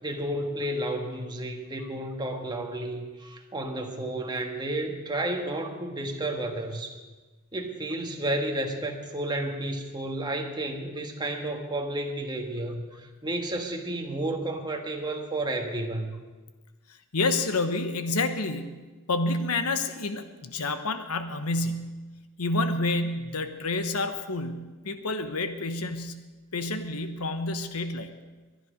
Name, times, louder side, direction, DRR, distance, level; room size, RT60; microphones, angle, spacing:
voice 1, 0.0-7.0 7.5-16.2, right 1 dB, 20° right, 2 dB, 1.6 m, -32 dB
voice 2, 17.1-22.0 22.4-26.2 26.5-28.1, left 2 dB, 90° left, 9 dB, 1.1 m, -29 dB
22.0 x 10.5 x 5.1 m, 1.3 s
head